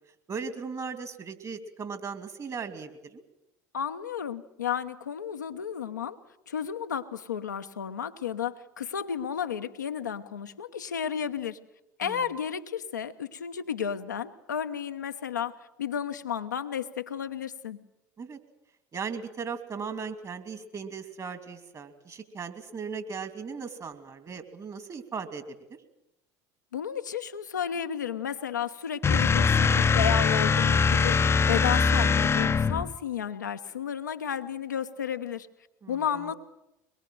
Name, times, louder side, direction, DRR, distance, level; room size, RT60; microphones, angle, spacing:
voice 1, 0.3-3.2 12.0-12.3 18.2-18.4 18.9-25.8 35.8-36.3, right 5 dB, 35° right, 9 dB, 2.8 m, -38 dB
voice 2, 3.7-6.2 6.5-11.6 12.0-17.8 26.7-35.5 35.9-36.4, left 8 dB, 90° left, 8 dB, 1.0 m, -33 dB
sound 1, 29.0-33.0, left 5 dB, 25° left, 0.8 m, -22 dB
23.0 x 21.5 x 7.8 m, 0.86 s
hypercardioid pair, 70°, 9 cm